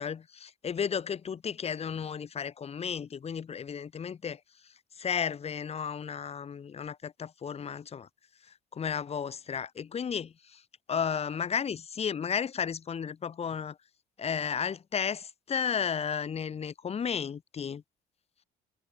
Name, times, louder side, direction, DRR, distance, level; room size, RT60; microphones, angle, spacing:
voice 1, 0.0-8.1 8.4-10.6 10.9-13.8 14.2-17.8, left 7 dB, 35° left, 2.3 m, -33 dB
cardioid pair, 110°, 17 cm